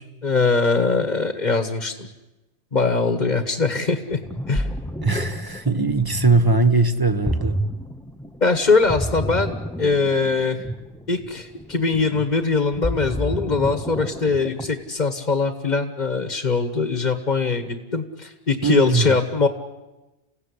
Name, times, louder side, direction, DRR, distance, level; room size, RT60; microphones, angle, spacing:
voice 1, 0.2-2.1 2.7-4.2 4.5-4.7 8.4-10.6 11.1-19.5, left 4 dB, 40° left, 1.5 m, -22 dB
Ocean, 4.1-14.9, equal, 5° left, 0.6 m, -30 dB
voice 2, 5.0-7.6 18.6-19.1, right 3 dB, 20° right, 1.1 m, -20 dB
30.0 x 16.5 x 9.8 m
omnidirectional pair, 1.2 m